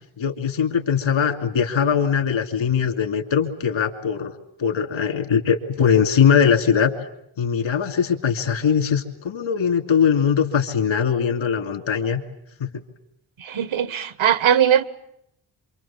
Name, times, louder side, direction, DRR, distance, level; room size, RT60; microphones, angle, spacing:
voice 1, 0.0-4.3 4.6-6.9 7.4-12.2 12.6-12.8, left 7 dB, 75° left, 3.0 m, -21 dB
voice 2, 13.4-14.8, right 9 dB, 75° right, 1.4 m, -19 dB
27.0 x 25.5 x 7.4 m
wide cardioid pair, 155°, 47 cm